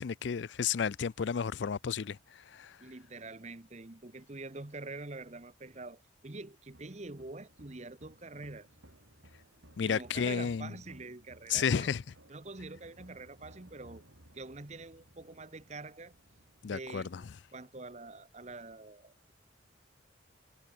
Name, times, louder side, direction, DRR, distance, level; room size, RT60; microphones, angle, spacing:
voice 1, 0.0-2.8 9.8-10.7 11.5-12.0 16.6-17.2, left 7 dB, 65° left, 0.4 m, -32 dB
voice 2, 2.8-8.7 9.8-12.0 12.3-14.0 14.3-16.1 16.6-17.2 17.5-19.3, right 3 dB, 35° right, 1.1 m, -46 dB
sound 1, 6.7-16.9, right 1 dB, 75° right, 4.9 m, -60 dB
head